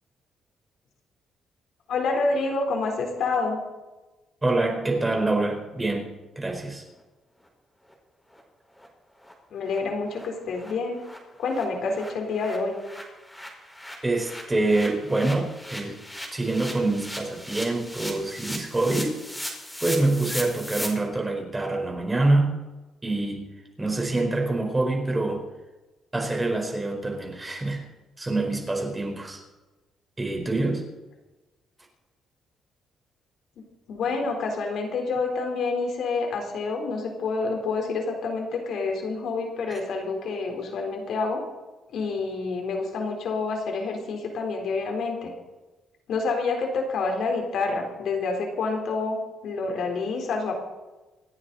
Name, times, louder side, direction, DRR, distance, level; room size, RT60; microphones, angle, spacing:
voice 1, 1.9-3.6 9.5-11.0 11.4-12.8 33.9-41.4 41.9-45.3 46.1-50.5, left 4 dB, 70° left, 2 dB, 4.0 m, -28 dB
voice 2, 4.4-6.8 14.0-16.0 16.3-19.2 19.8-22.6 23.0-23.5 23.8-25.4 26.1-27.9 28.2-29.4 30.2-30.9 39.7-39.8, right 2 dB, 15° right, 1 dB, 4.5 m, -26 dB
sound 1, 7.9-8.0 8.3-8.4 8.8-8.9 9.2-9.3 9.7-9.8 10.1-10.3 10.6-10.7 11.0-20.9, equal, 10° left, 4.7 m, -38 dB
27.0 x 9.7 x 4.2 m, 1.1 s
cardioid pair, 90°, 0 cm